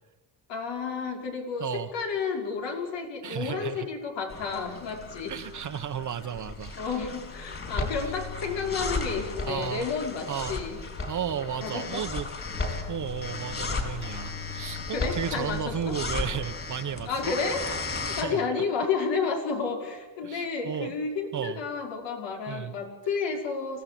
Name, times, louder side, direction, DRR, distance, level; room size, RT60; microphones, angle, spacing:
voice 1, 0.5-5.3 6.8-10.8 11.6-12.0 14.9-16.0 17.0-23.8, left 5 dB, 75° left, 2 dB, 5.7 m, -31 dB
voice 2, 1.6-1.9 3.2-3.9 5.3-6.8 7.7-8.1 9.4-9.9 10.3-10.6 11.1-12.3 12.9-17.3 18.0-18.5 20.2-21.0 21.3-21.6 22.5-22.7, right 9 dB, 45° right, 7 dB, 1.1 m, -34 dB
sound 1, 4.3-18.2, left 4 dB, 30° left, 4.9 m, -35 dB
24.5 x 17.0 x 8.7 m, 1.1 s
cardioid pair, 135°, 44 cm